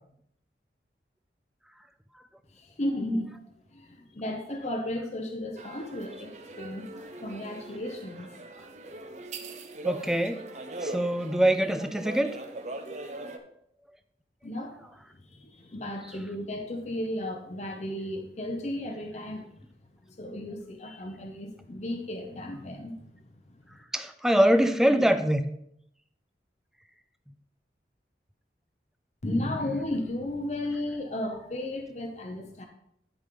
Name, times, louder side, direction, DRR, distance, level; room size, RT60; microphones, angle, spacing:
voice 1, 2.5-3.4 3.7-6.9 7.2-8.3 14.4-14.8 15.1-19.7 20.1-23.1 23.5-23.8 29.2-32.7, left 1 dB, 40° left, 2 dB, 0.8 m, -34 dB
sound 1, 5.6-13.4, right 2 dB, 40° right, 0.8 m, -40 dB
voice 2, 9.8-10.4 10.8-12.4 23.9-25.5, right 1 dB, 5° right, 8 dB, 0.4 m, -23 dB
11.5 x 5.3 x 3.8 m, 0.73 s
head